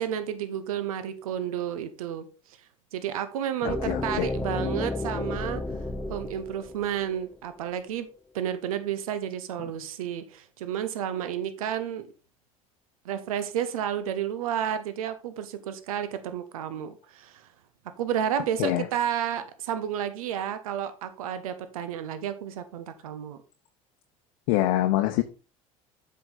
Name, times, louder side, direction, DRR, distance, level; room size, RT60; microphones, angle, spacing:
voice 1, 0.0-2.3 2.9-5.6 6.1-8.1 8.3-12.1 13.0-17.5 18.0-23.4, right 9 dB, 80° right, 11 dB, 0.8 m, -31 dB
voice 2, 3.6-4.3 18.6-18.9 24.5-25.2, left 15 dB, 70° left, 7 dB, 0.7 m, -25 dB
sound 1, 3.7-7.6, left 2 dB, 10° left, 0.7 m, -32 dB
7.8 x 5.6 x 4.0 m, 0.33 s
hypercardioid pair, 70°, 18 cm